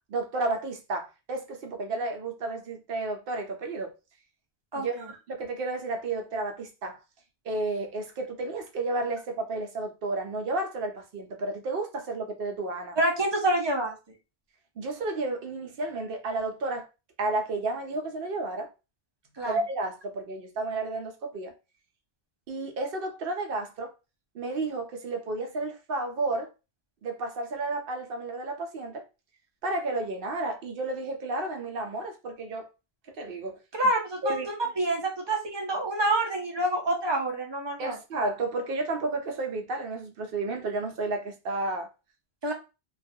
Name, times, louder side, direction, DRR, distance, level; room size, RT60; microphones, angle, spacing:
voice 1, 0.1-3.9 4.7-7.0 7.4-13.0 14.8-16.9 17.2-18.7 19.5-21.5 22.5-23.9 24.3-26.5 27.0-29.0 29.6-32.7 33.1-33.6 34.2-34.5 37.8-41.9, right 2 dB, 65° right, 0.7 m, -32 dB
voice 2, 4.7-5.1 13.0-14.0 19.4-19.6 33.7-38.0 42.4-42.5, right 1 dB, 35° right, 0.5 m, -27 dB
2.4 x 2.2 x 2.6 m
omnidirectional pair, 1.1 m